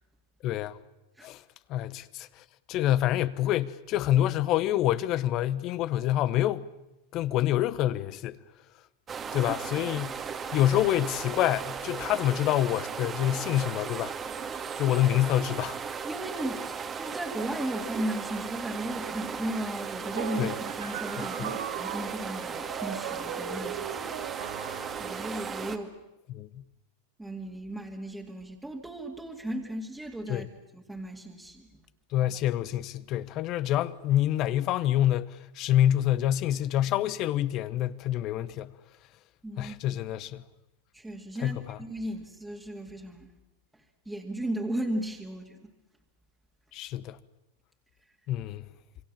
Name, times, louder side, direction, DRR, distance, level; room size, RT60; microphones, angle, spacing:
voice 1, 0.4-0.8 1.2-1.4 1.7-2.3 2.7-6.7 7.1-8.4 9.3-10.2 10.5-14.1 14.8-15.9 20.4-20.6 21.2-21.5 26.3-26.6 30.3-30.5 32.1-38.7 39.6-40.4 41.4-41.8 46.7-47.2 48.3-48.6, left 12 dB, 45° left, 0.9 m, -27 dB
sound 1, 9.1-25.8, right 6 dB, 30° right, 1.9 m, -36 dB
voice 2, 16.1-24.1 25.0-25.9 27.2-30.5 30.7-31.7 39.4-39.8 40.9-43.3 44.1-45.7, right 1 dB, 5° right, 2.3 m, -36 dB
sound 2, 20.1-25.4, right 10 dB, 80° right, 1.8 m, -38 dB
27.0 x 23.0 x 7.4 m
hypercardioid pair, 105°, 0 cm